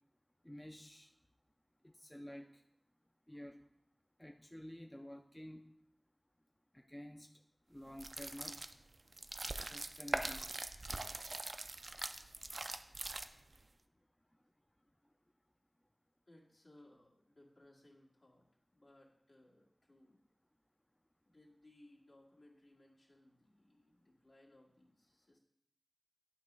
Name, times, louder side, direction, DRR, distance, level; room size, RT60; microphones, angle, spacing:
voice 1, 0.4-1.1 1.8-2.6 3.3-3.6 4.2-5.7 6.7-7.3 7.7-8.6 9.5-10.6, equal, 10° left, 4 dB, 0.4 m, -51 dB
sound 1, 7.9-13.6, right 2 dB, 65° right, 0.3 m, -42 dB
voice 2, 16.3-18.5 18.7-20.2 21.2-25.4, left 1 dB, 65° left, -4 dB, 1.7 m, -64 dB
9.3 x 3.1 x 5.3 m, 0.77 s
wide cardioid pair, 65°, 0 cm